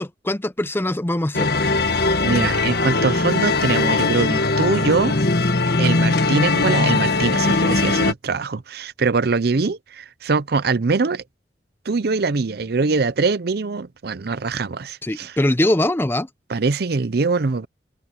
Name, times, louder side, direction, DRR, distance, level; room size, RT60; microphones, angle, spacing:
voice 1, 0.0-1.5 15.0-16.3, left 1 dB, 15° left, 0.6 m, -22 dB
sound 1, 1.3-8.1, left 3 dB, 60° left, 1.7 m, -20 dB
voice 2, 2.2-5.1 5.8-11.2 11.9-15.4 16.5-17.7, right 4 dB, 60° right, 0.6 m, -22 dB
head